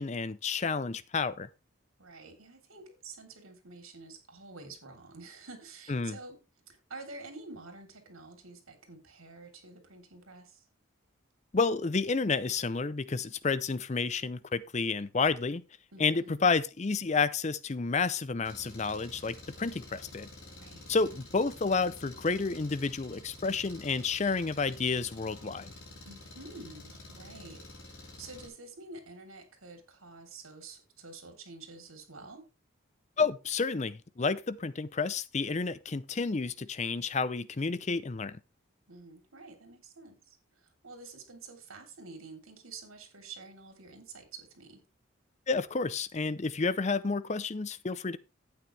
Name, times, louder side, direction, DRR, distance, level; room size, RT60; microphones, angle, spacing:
voice 1, 0.0-1.5 5.9-6.2 11.5-15.6 16.0-20.3 20.9-25.7 33.2-38.4 45.5-48.2, left 4 dB, 35° left, 0.5 m, -30 dB
voice 2, 2.0-6.4 6.7-10.7 15.9-16.4 20.5-20.9 26.1-27.6 28.0-32.5 38.9-44.8, right 3 dB, 85° right, 3.5 m, -49 dB
Engine, 18.4-28.5, left 2 dB, 80° left, 4.8 m, -49 dB
12.5 x 8.8 x 3.3 m
head